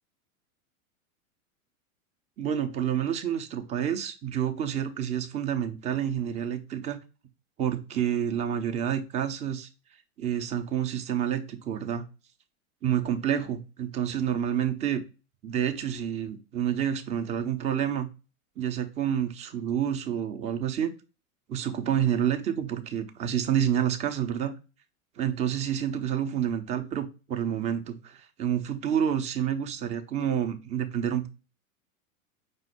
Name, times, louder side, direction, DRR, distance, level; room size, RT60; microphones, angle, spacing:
voice 1, 2.4-7.0 7.6-9.7 10.2-12.1 12.8-15.0 15.4-18.1 18.6-20.9 21.5-24.5 25.2-31.3, right 9 dB, 15° right, 8 dB, 0.4 m, -28 dB
5.1 x 2.0 x 4.7 m, 0.30 s
hypercardioid pair, 100°, 42 cm